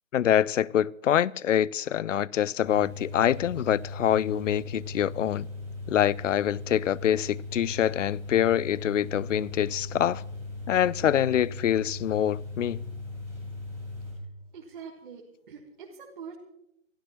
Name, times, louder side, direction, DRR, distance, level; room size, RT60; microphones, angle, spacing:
voice 1, 0.1-5.5 5.9-10.2 10.7-12.9, left 10 dB, 65° left, 0.5 m, -25 dB
sound 1, 2.6-14.1, left 2 dB, 5° left, 4.7 m, -38 dB
voice 2, 14.5-16.3, right 6 dB, 35° right, 1.7 m, -44 dB
26.0 x 13.0 x 3.0 m
hypercardioid pair, 170°, 40 cm